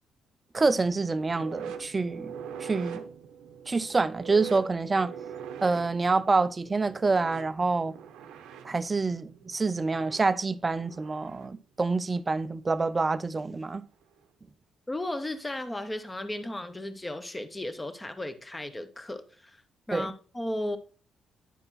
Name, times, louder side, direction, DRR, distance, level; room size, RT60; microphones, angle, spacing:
voice 1, 0.5-2.3 2.6-3.0 3.7-5.1 5.6-7.9 8.6-13.8 19.9-20.1, right 3 dB, 25° right, 0.4 m, -27 dB
sound 1, 0.6-11.6 12.9-13.1 14.0-14.1, right 7 dB, 90° right, 0.8 m, -43 dB
voice 2, 14.9-19.6 19.9-20.8, left 1 dB, 15° left, 0.9 m, -35 dB
9.9 x 4.3 x 4.1 m
cardioid pair, 90°, 0 cm